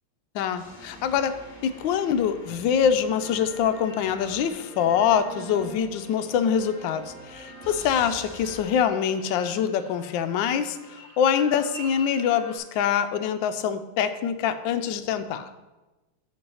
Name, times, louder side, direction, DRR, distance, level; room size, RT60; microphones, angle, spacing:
voice 1, 0.3-1.4 1.6-15.5, left 8 dB, 75° left, 10 dB, 1.2 m, -25 dB
sound 1, 0.6-8.6, right 1 dB, 20° left, 1.4 m, -44 dB
sound 2, 3.2-12.6, left 1 dB, 65° right, 3.4 m, -47 dB
7.5 x 5.5 x 5.5 m, 1.1 s
omnidirectional pair, 2.4 m